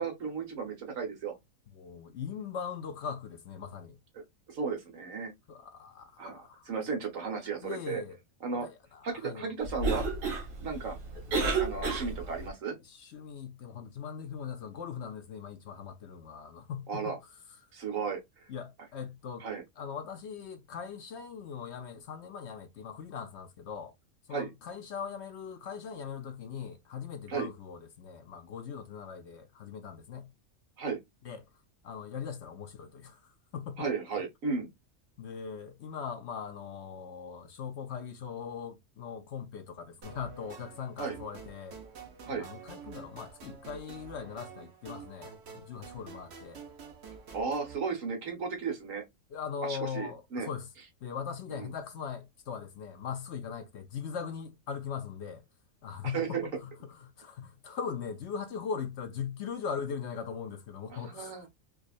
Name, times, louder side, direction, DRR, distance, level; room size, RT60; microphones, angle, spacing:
voice 1, 0.0-1.3 4.5-5.3 6.2-8.0 8.4-8.7 9.0-10.1 10.6-11.0 11.6-12.8 16.9-17.2 17.7-18.4 19.4-19.6 24.3-24.5 27.3-27.5 30.8-31.0 33.8-34.7 41.0-41.2 42.3-42.4 47.3-49.0 49.6-50.5 51.6-51.7 56.1-56.5 60.9-61.5, right 5 dB, 70° right, 1.5 m, -34 dB
voice 2, 1.7-4.0 5.5-6.7 7.6-8.2 8.5-9.5 12.0-12.3 12.8-17.2 18.5-19.5 19.8-23.9 24.3-30.3 31.2-31.4 31.8-33.9 35.2-41.8 42.3-46.6 49.3-50.7 51.0-55.4 55.8-61.3, left 6 dB, 65° left, 0.8 m, -40 dB
Cough, 9.6-12.5, right 3 dB, 90° right, 1.5 m, -32 dB
sound 1, 40.0-47.8, right 6 dB, 55° right, 1.1 m, -48 dB
4.7 x 2.4 x 2.4 m
omnidirectional pair, 1.4 m